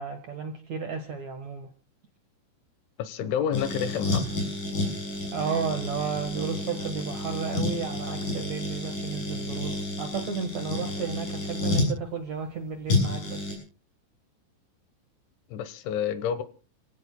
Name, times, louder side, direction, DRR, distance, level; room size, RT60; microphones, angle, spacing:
voice 1, 0.0-1.7 5.3-13.4, right 5 dB, 65° right, 1.7 m, -33 dB
voice 2, 3.0-4.3 15.5-16.4, left 8 dB, 90° left, 3.6 m, -29 dB
sound 1, 3.5-11.9 12.9-13.6, left 2 dB, 45° left, 9.5 m, -30 dB
30.0 x 16.0 x 2.2 m
omnidirectional pair, 5.2 m